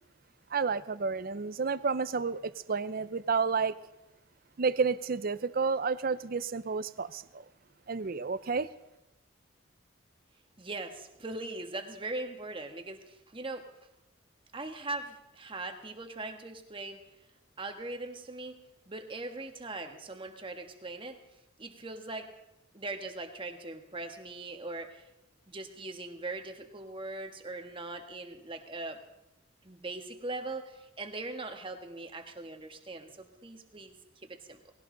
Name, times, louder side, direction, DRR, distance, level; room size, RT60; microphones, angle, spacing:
voice 1, 0.5-3.8 4.6-7.4 7.9-8.7, right 5 dB, 50° right, 15 dB, 0.6 m, -30 dB
voice 2, 10.6-13.7 14.5-17.0 17.6-21.2 21.6-22.3 22.7-25.0 25.5-29.0 29.6-33.9 34.2-34.6, right 2 dB, 25° right, 6 dB, 1.4 m, -40 dB
19.0 x 17.0 x 3.9 m, 0.94 s
head